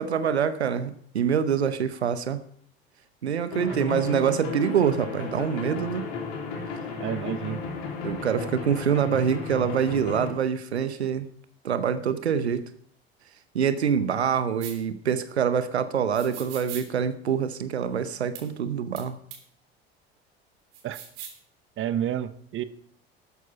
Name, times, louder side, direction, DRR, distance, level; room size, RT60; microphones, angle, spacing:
voice 1, 0.0-2.4 3.2-6.1 8.0-11.3 11.6-12.7 13.5-19.2, right 7 dB, 85° right, 13 dB, 0.8 m, -25 dB
sound 1, 3.5-10.3, left 5 dB, 60° left, 3.6 m, -34 dB
voice 2, 7.0-7.6 20.8-21.0 21.8-22.6, right 10 dB, 40° right, 14 dB, 0.9 m, -29 dB
sound 2, 14.6-14.8 16.1-16.8 18.3-18.4 19.0-19.1 19.3-19.4 20.7-21.4, right 8 dB, 60° right, 3.4 m, -40 dB
12.5 x 9.2 x 5.4 m, 0.62 s
figure-of-eight pair, 70°, 32 cm